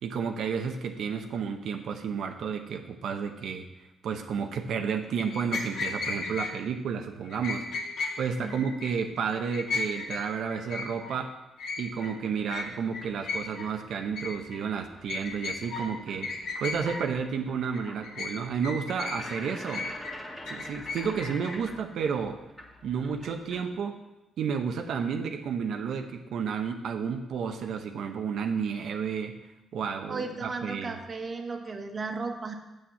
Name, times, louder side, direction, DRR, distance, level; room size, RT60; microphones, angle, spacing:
voice 1, 0.0-3.6 4.0-7.7 8.2-11.3 11.8-16.3 16.6-19.9 20.5-22.4 22.8-24.0 24.4-29.3 29.7-31.0, right 6 dB, 70° right, 5 dB, 0.8 m, -31 dB
sound 1, 5.2-6.5 7.3-8.1 8.5-9.0 9.3-10.2 10.5-11.1 11.6-12.1 12.5-12.7 12.9-13.7 14.0-14.6 15.1-15.9 16.2-17.0 17.6-18.3 18.6-19.4 19.7-21.6, left 4 dB, 70° left, 1.8 m, -35 dB
sound 2, 12.2-23.8, left 1 dB, 10° left, 2.1 m, -47 dB
voice 2, 30.1-32.5, right 3 dB, 35° right, 5 dB, 1.3 m, -35 dB
7.9 x 6.4 x 7.1 m, 0.99 s
cardioid pair, 90°, 0 cm